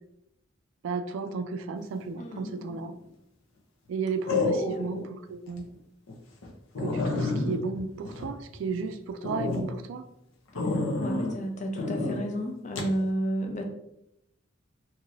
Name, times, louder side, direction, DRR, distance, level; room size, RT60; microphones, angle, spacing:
voice 1, 0.8-3.0 3.9-5.6 6.8-10.0, right 4 dB, 75° right, 9 dB, 0.3 m, -33 dB
voice 2, 2.2-2.8 4.7-4.8 11.0-13.6, right 1 dB, 35° left, 3 dB, 0.5 m, -32 dB
sound 1, 2.7-3.1 4.3-5.0 5.5-5.6 6.1-6.2 6.4-6.5 6.8-8.8 9.2-9.6 10.6-11.4 11.8-12.2 12.8-12.9, left 3 dB, 85° left, 0.6 m, -29 dB
3.0 x 2.7 x 2.5 m, 0.81 s
head